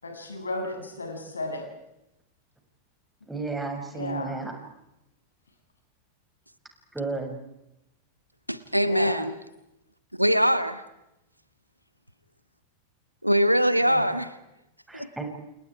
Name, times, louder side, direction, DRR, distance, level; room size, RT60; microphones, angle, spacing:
voice 1, 0.0-1.6 3.9-4.3 8.8-9.1 13.8-14.1, left 2 dB, 75° left, 2 dB, 7.6 m, -34 dB
voice 2, 3.3-4.5 6.9-7.4 14.9-15.2, right 3 dB, 5° right, 3 dB, 7.1 m, -32 dB
voice 3, 8.5-9.3 10.2-10.8 13.2-14.3 14.9-15.1, equal, 90° right, 13 dB, 1.6 m, -22 dB
30.0 x 29.0 x 4.9 m, 0.87 s
figure-of-eight pair, 90°, 0 cm